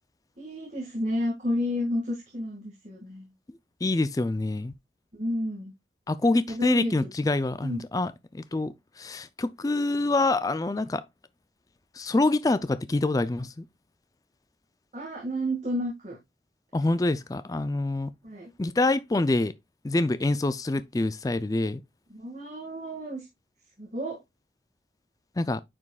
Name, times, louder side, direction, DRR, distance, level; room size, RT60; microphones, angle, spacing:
voice 1, 0.4-3.3 5.1-5.7 6.5-6.9 7.6-7.8 14.9-16.2 18.2-18.5 22.1-23.3 23.8-24.2, equal, 40° right, 2.0 m, -31 dB
voice 2, 3.8-4.7 6.1-11.0 12.0-13.6 16.7-18.1 18.6-19.5 19.8-21.8 25.4-25.6, left 2 dB, 20° left, 0.4 m, -26 dB
9.5 x 5.2 x 2.3 m
head